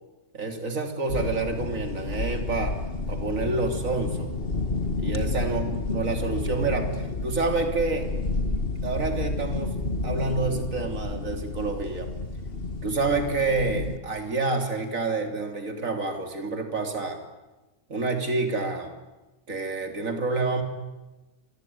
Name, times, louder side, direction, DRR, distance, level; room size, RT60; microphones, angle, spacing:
voice 1, 0.3-2.7 3.1-4.3 5.0-8.1 8.8-12.1 12.8-17.2 17.9-18.9 19.5-20.6, right 3 dB, 45° right, 5 dB, 3.6 m, -28 dB
sound 1, 1.1-14.0, left 3 dB, 35° left, 1.9 m, -30 dB
27.5 x 22.5 x 9.5 m, 1.1 s
omnidirectional pair, 1.9 m